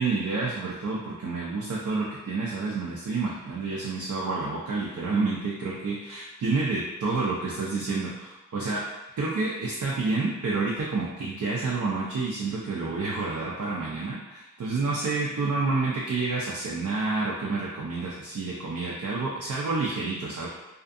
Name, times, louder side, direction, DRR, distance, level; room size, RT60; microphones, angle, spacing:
voice 1, 0.0-8.8 9.2-20.5, right 3 dB, 65° right, -5 dB, 0.5 m, -29 dB
2.5 x 2.4 x 2.5 m, 1.0 s
cardioid pair, 50°, 31 cm